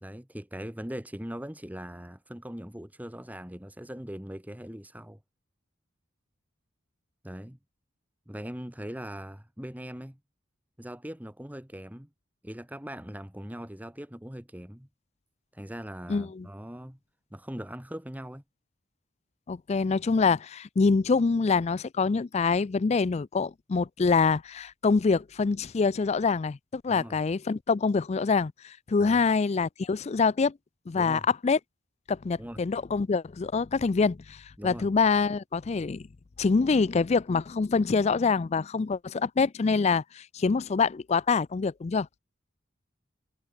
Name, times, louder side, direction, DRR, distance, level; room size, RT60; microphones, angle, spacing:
voice 1, 0.0-5.2 7.2-7.6 8.3-10.2 10.8-12.1 12.4-14.9 15.5-17.0 17.3-18.4 26.9-27.1 29.0-29.3 30.9-31.3 32.4-32.6 34.6-34.9, equal, 10° right, 1.7 m, -40 dB
voice 2, 16.1-16.5 19.5-30.6 30.9-31.6 32.1-36.1 36.4-42.1, left 4 dB, 35° left, 0.4 m, -25 dB
head